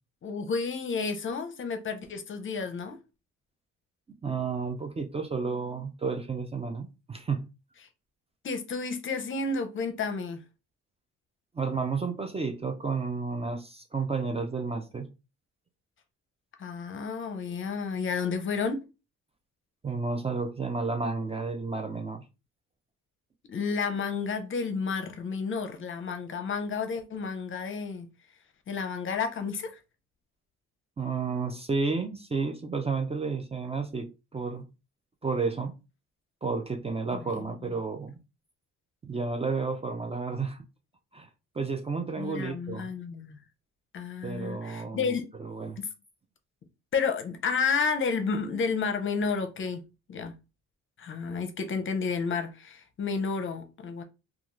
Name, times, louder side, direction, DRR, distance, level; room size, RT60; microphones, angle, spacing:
voice 1, 0.2-3.0 8.4-10.4 16.6-18.8 23.5-28.1 28.7-29.8 37.1-37.8 42.2-43.4 43.9-45.3 45.8-45.9 46.9-49.8 50.1-50.3 51.0-54.0, left 5 dB, 40° left, 0.6 m, -31 dB
voice 2, 4.2-7.4 11.5-15.1 19.8-22.2 31.0-34.7 35.2-35.7 36.4-38.2 39.0-40.6 41.1-41.3 41.5-42.9 44.2-45.0 45.4-45.8, right 4 dB, 20° right, 0.4 m, -31 dB
2.4 x 2.3 x 3.0 m
cardioid pair, 90°, 30 cm